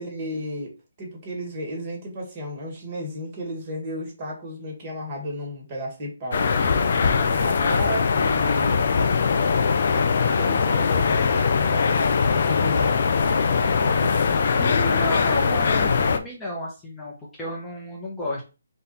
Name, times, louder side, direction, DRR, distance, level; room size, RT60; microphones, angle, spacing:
voice 1, 0.0-8.9 10.2-13.1, equal, 35° right, -1 dB, 1.7 m, -33 dB
sound 1, 6.3-16.2, left 5 dB, 55° left, 0.5 m, -21 dB
voice 2, 14.6-18.4, equal, 10° left, -5 dB, 0.9 m, -32 dB
4.2 x 2.5 x 4.1 m, 0.30 s
hypercardioid pair, 155°, 0 cm